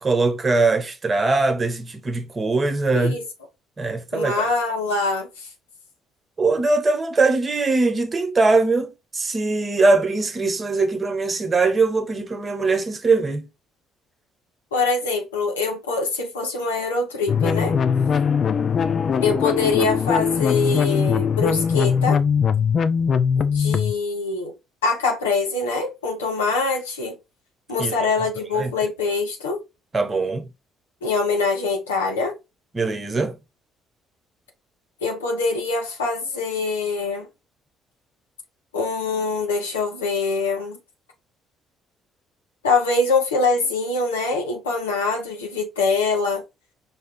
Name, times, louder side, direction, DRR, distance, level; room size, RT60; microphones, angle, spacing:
voice 1, 0.0-3.2 3.8-4.5 6.4-13.5 27.8-27.9 28.5-28.7 29.9-30.5 32.7-33.4, right 3 dB, 35° right, 1.0 m, -21 dB
voice 2, 4.1-5.3 14.7-17.8 19.2-22.2 23.5-24.5 24.8-27.2 27.7-29.6 31.0-32.3 35.0-37.3 38.7-40.8 42.6-46.4, left 3 dB, 90° left, 1.1 m, -24 dB
sound 1, 17.3-23.9, left 6 dB, 45° left, 0.4 m, -21 dB
5.3 x 2.6 x 3.6 m
hypercardioid pair, 50°, 0 cm